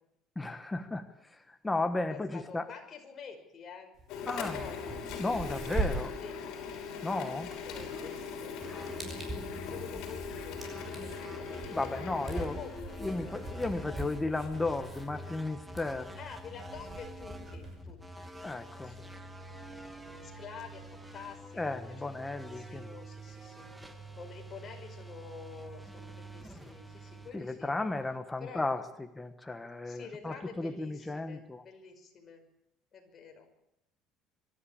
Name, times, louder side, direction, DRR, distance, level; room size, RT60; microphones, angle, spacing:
voice 1, 0.4-1.1 1.6-2.7 4.3-4.6 5.2-6.1 7.0-7.5 8.7-8.9 11.7-12.6 13.0-16.1 18.4-18.9 21.6-22.9 27.3-31.6, left 2 dB, 10° left, 7 dB, 1.2 m, -34 dB
voice 2, 2.1-3.9 4.2-5.0 5.8-6.7 7.6-12.0 12.4-14.1 16.2-19.3 20.2-22.2 22.5-23.7 24.1-27.7 28.4-28.6 29.8-32.4 32.9-33.5, left 6 dB, 30° left, 3 dB, 5.5 m, -49 dB
sound 1, 4.0-4.1 4.4-17.8, right 3 dB, 25° right, 6.0 m, -42 dB
Printer, 4.1-15.4, left 6 dB, 65° left, 6.3 m, -41 dB
sound 2, 8.6-28.2, right 1 dB, 10° right, 2.0 m, -47 dB
25.0 x 13.0 x 8.6 m, 0.85 s
cardioid pair, 140°, 0 cm